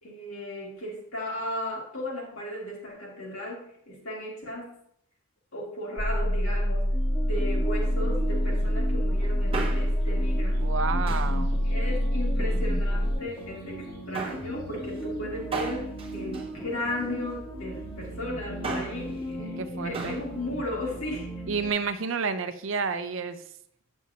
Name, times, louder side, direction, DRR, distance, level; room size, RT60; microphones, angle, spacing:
voice 1, 0.0-4.8 5.5-6.9 7.2-10.6 11.6-21.3, left 1 dB, 75° left, -3 dB, 2.5 m, -36 dB
sound 1, 6.0-13.1, equal, 45° left, 0.8 m, -26 dB
sound 2, 6.9-21.7, equal, 20° left, 1.4 m, -37 dB
Male speech man speaking, 9.3-10.1 11.1-11.4 12.3-13.1 14.1-14.5 15.5-17.2 18.4-19.1 19.9-20.3 20.6-20.7, right 4 dB, 25° right, 0.7 m, -36 dB
voice 2, 10.6-11.6 19.4-20.2 21.5-23.4, right 5 dB, 65° right, 10 dB, 0.6 m, -30 dB
8.6 x 6.2 x 2.8 m, 0.72 s
head